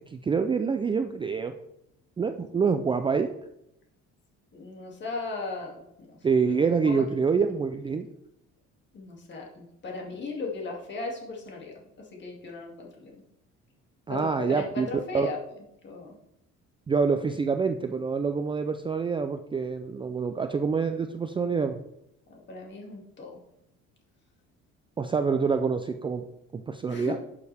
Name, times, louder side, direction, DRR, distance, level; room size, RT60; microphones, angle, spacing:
voice 1, 0.1-1.5 2.2-3.3 6.2-8.1 14.1-14.9 15.1-15.3 16.9-21.8 25.0-26.2 26.5-27.2, right 5 dB, 15° right, 7 dB, 0.4 m, -26 dB
voice 2, 4.5-6.2 6.9-7.0 8.9-13.1 14.1-15.4 15.8-16.1 22.3-23.3 26.9-27.2, left 3 dB, 40° left, 0 dB, 2.5 m, -37 dB
11.0 x 7.1 x 3.5 m, 0.80 s
cardioid pair, 140°, 29 cm